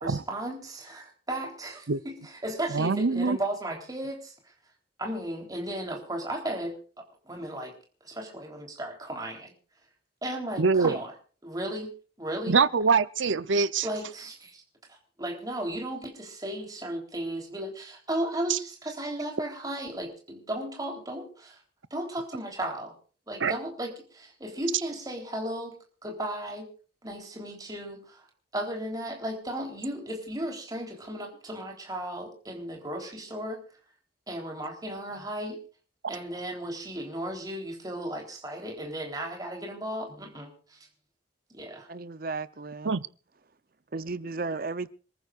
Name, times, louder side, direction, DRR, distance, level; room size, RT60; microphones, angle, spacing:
voice 1, 0.0-4.3 5.0-7.7 8.0-9.5 10.2-11.1 11.4-11.9 12.2-12.6 13.8-14.6 14.9-21.6 21.9-22.9 23.3-25.8 26.0-26.7 27.0-28.3 28.5-33.6 34.3-35.6 36.1-40.8 41.5-41.9, right 1 dB, 20° right, 3.7 m, -35 dB
voice 2, 2.7-3.4 10.6-11.0 12.5-13.9 18.5-18.6 23.4-23.5 42.8-43.0, right 4 dB, 85° right, 0.7 m, -24 dB
voice 3, 41.9-43.0 43.9-44.9, right 3 dB, 50° right, 0.8 m, -34 dB
27.0 x 14.5 x 2.5 m
head